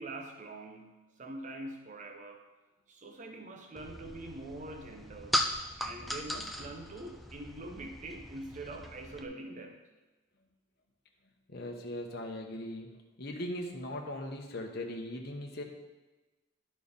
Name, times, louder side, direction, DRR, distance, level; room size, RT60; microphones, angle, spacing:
voice 1, 0.0-2.5 2.9-5.4 5.8-9.8, right 2 dB, 40° right, 3 dB, 0.7 m, -44 dB
sound 1, 3.8-9.3, equal, ahead, 0.5 m, -38 dB
voice 2, 11.5-12.9 13.2-15.6, left 1 dB, 50° left, 1 dB, 1.1 m, -39 dB
11.0 x 4.7 x 5.4 m, 1.2 s
head